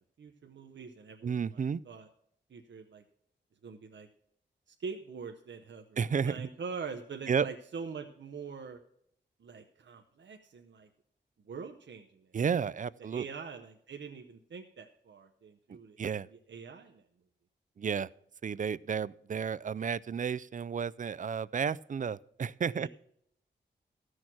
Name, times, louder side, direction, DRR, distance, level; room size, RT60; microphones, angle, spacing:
voice 1, 0.2-2.1 2.5-3.0 3.6-4.1 4.7-8.8 9.4-10.9 11.5-12.3 13.0-16.0 16.3-17.0 22.8-22.9, right 5 dB, 75° right, 4 dB, 0.8 m, -44 dB
voice 2, 1.2-1.8 6.0-6.5 7.3-7.5 12.3-13.2 16.0-16.3 17.8-18.1 18.4-22.9, right 6 dB, 45° right, 20 dB, 0.4 m, -32 dB
13.5 x 6.4 x 6.1 m, 0.70 s
cardioid pair, 50°, 19 cm